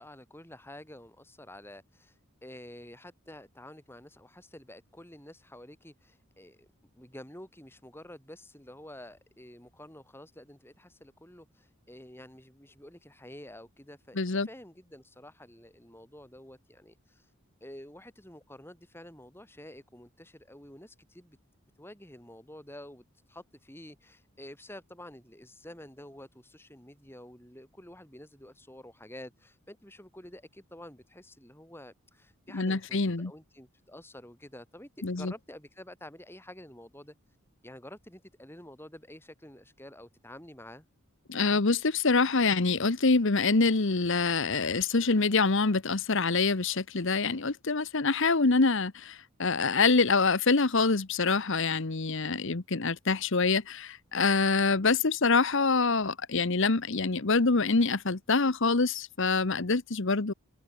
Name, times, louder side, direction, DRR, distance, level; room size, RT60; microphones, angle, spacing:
voice 1, 0.0-6.7 6.9-17.3 17.6-21.4 21.8-37.1 37.6-40.8, left 1 dB, 10° left, 5.8 m, -49 dB
voice 2, 14.2-14.5 32.5-33.3 35.0-35.3 41.3-60.3, left 4 dB, 55° left, 1.1 m, -25 dB
head